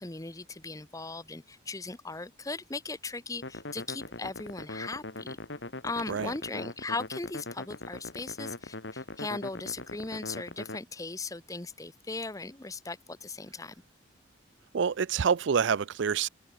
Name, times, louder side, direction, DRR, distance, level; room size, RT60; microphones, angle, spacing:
voice 1, 0.0-5.4 5.8-13.7, left 3 dB, 15° left, 0.8 m, -38 dB
sound 1, 3.4-10.8, left 2 dB, 65° left, 2.5 m, -41 dB
voice 2, 14.7-16.3, right 6 dB, 70° right, 0.5 m, -27 dB
open air
head